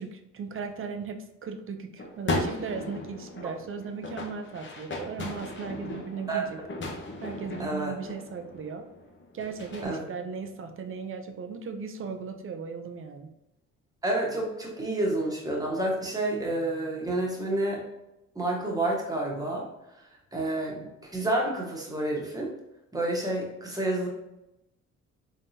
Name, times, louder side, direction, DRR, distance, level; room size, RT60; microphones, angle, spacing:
voice 1, 0.0-6.6 7.2-8.8 9.3-13.3, right 5 dB, 45° right, 6 dB, 0.6 m, -37 dB
sound 1, 2.0-9.8, left 2 dB, 40° left, 0.9 m, -36 dB
voice 2, 7.6-7.9 9.8-10.1 14.0-17.8 18.3-19.7 20.3-22.5 22.9-24.1, right 1 dB, 10° right, -2 dB, 1.3 m, -29 dB
3.7 x 3.6 x 2.8 m, 0.90 s
cardioid pair, 90°, 30 cm